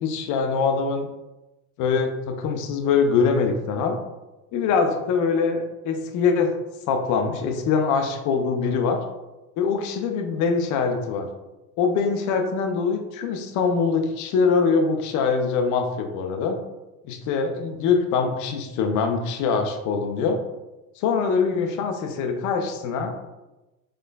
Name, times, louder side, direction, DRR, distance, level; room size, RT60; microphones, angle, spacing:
voice 1, 0.0-1.1 1.8-4.0 4.5-6.6 6.9-9.0 9.6-11.3 11.8-16.6 17.0-20.4 21.0-23.2, left 5 dB, 45° left, 5 dB, 0.6 m, -23 dB
4.4 x 2.3 x 2.2 m, 1.0 s
hypercardioid pair, 90°, 42 cm